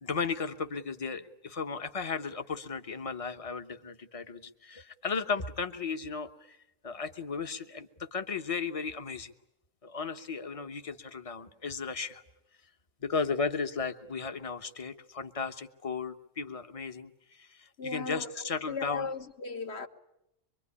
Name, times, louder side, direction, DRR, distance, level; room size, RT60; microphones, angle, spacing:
voice 1, 0.0-6.6 6.8-9.3 9.8-12.2 13.0-19.1, left 5 dB, 30° left, 1.1 m, -35 dB
voice 2, 17.8-19.9, left 4 dB, 55° left, 1.5 m, -37 dB
24.5 x 24.0 x 9.8 m
omnidirectional pair, 1.4 m